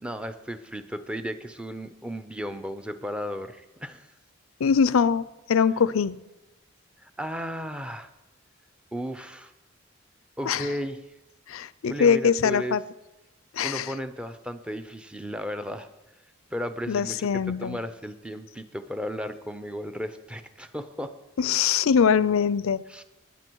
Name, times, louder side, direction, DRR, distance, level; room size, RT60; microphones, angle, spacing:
voice 1, 0.0-4.1 7.0-8.1 8.9-9.5 10.4-11.0 11.9-12.8 13.6-15.9 16.5-21.2 22.9-23.0, equal, 5° right, 0.6 m, -34 dB
voice 2, 4.6-5.2 5.5-6.2 10.5-10.7 11.5-12.8 13.5-13.9 16.9-17.8 21.4-22.8, left 6 dB, 80° left, 0.4 m, -22 dB
19.5 x 10.0 x 4.6 m
head